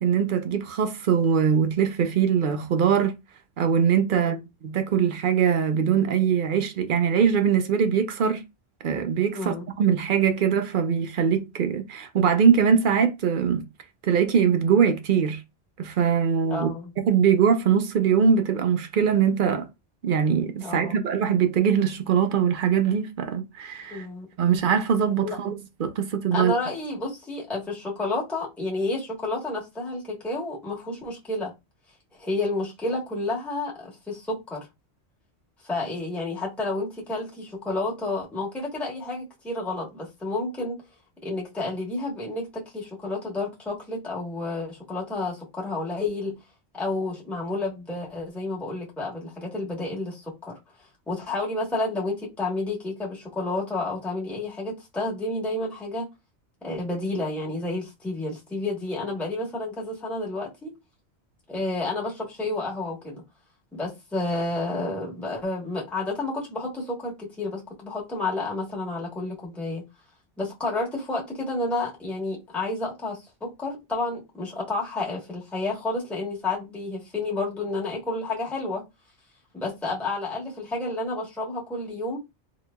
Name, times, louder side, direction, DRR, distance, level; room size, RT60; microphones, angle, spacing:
voice 1, 0.0-3.1 3.6-4.4 4.6-8.4 8.8-13.6 14.0-15.4 15.8-16.7 17.0-19.7 20.0-24.1 24.4-26.5, right 7 dB, 55° right, 0.7 m, -22 dB
voice 2, 9.3-9.6 16.5-16.9 20.6-21.0 23.9-24.6 25.2-25.5 26.3-31.5 32.2-34.7 35.6-40.8 41.2-46.3 46.7-50.6 51.1-56.1 56.6-60.7 61.5-63.2 63.7-69.8 70.4-78.8 79.5-82.2, left 2 dB, ahead, 1.0 m, -30 dB
3.9 x 3.0 x 2.2 m
omnidirectional pair, 1.2 m